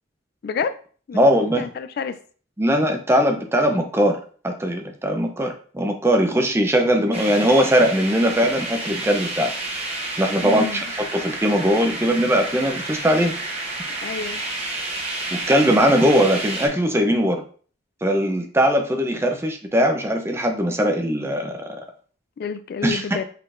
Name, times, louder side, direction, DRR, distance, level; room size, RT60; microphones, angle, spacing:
voice 1, 0.4-0.8 1.1-1.2 1.6-2.2 10.4-10.8 14.0-14.4 22.4-23.2, left 6 dB, 55° left, 0.3 m, -28 dB
voice 2, 1.1-1.7 2.6-4.2 4.4-9.5 10.2-13.3 15.5-17.4 18.0-21.8 22.8-23.2, equal, 15° right, 0.6 m, -20 dB
sound 1, 7.1-16.7, right 2 dB, 35° right, 1.0 m, -30 dB
5.6 x 3.7 x 2.5 m
head